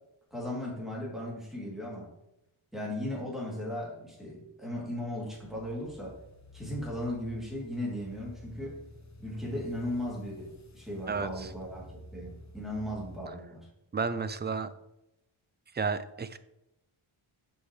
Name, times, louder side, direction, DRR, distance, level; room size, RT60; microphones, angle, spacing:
voice 1, 0.3-2.1 2.7-6.2 6.5-8.8 9.2-13.7, left 1 dB, ahead, -5 dB, 3.0 m, -37 dB
sound 1, 5.4-13.2, left 1 dB, 35° left, 0.9 m, -51 dB
voice 2, 11.1-11.5 13.9-14.7 15.7-16.4, right 5 dB, 25° right, 12 dB, 0.4 m, -32 dB
7.8 x 5.9 x 3.3 m, 0.87 s
wide cardioid pair, 105°, 49 cm